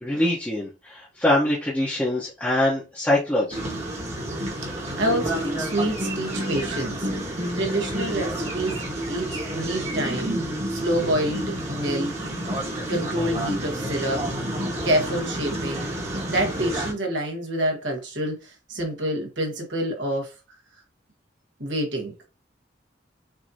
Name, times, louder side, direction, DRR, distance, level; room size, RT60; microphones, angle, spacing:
voice 1, 0.0-3.6, left 1 dB, 10° left, 1.0 m, -23 dB
sound 1, 3.5-16.9, right 1 dB, 35° right, 1.4 m, -29 dB
voice 2, 4.6-10.3 10.7-12.1 12.9-14.3 14.8-15.9 16.3-20.3 21.6-22.1, right 1 dB, 80° right, 1.5 m, -27 dB
6.2 x 2.8 x 2.8 m
head